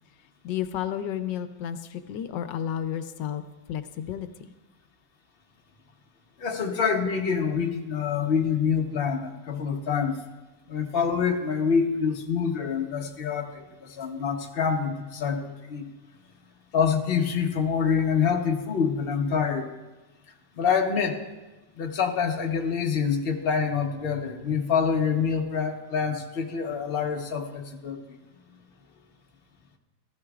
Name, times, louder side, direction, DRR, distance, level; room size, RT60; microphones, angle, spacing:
voice 1, 0.4-3.4 3.7-4.5, left 10 dB, 85° left, 10 dB, 1.3 m, -32 dB
voice 2, 6.4-10.2 10.7-15.9 16.7-19.7 20.6-21.2 21.8-28.0, left 6 dB, 40° left, 3 dB, 1.1 m, -26 dB
15.0 x 14.5 x 2.4 m, 1.1 s
omnidirectional pair, 1.9 m